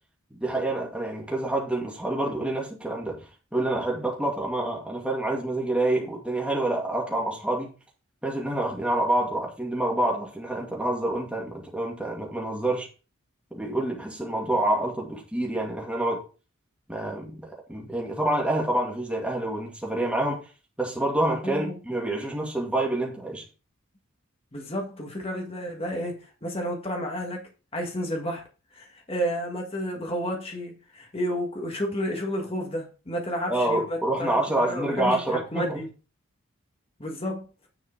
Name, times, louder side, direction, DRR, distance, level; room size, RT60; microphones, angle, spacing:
voice 1, 0.3-7.7 8.2-12.9 13.5-16.2 16.9-20.4 20.8-23.4 33.5-35.8, right 1 dB, 5° right, 2.2 m, -27 dB
voice 2, 21.4-21.8 24.5-28.4 28.7-35.9 37.0-37.4, equal, 25° left, 1.7 m, -31 dB
9.9 x 4.8 x 4.5 m
head